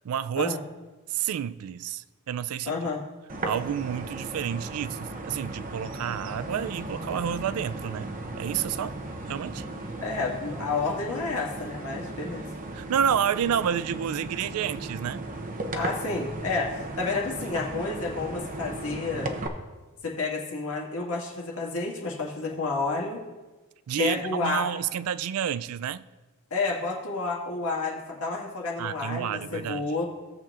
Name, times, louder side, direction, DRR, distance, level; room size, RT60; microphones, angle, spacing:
voice 1, 0.0-0.6 1.1-2.7 3.4-8.1 8.4-9.0 9.3-9.6 12.7-15.3 23.9-26.1 28.8-29.9, right 8 dB, 85° right, 0.4 m, -29 dB
voice 2, 2.6-3.0 10.0-12.5 15.7-19.3 20.0-23.2 24.0-24.7 26.5-30.0, left 3 dB, 75° left, 1.9 m, -30 dB
sound 1, 3.3-19.5, right 2 dB, 40° right, 0.8 m, -36 dB
16.5 x 7.3 x 2.5 m
head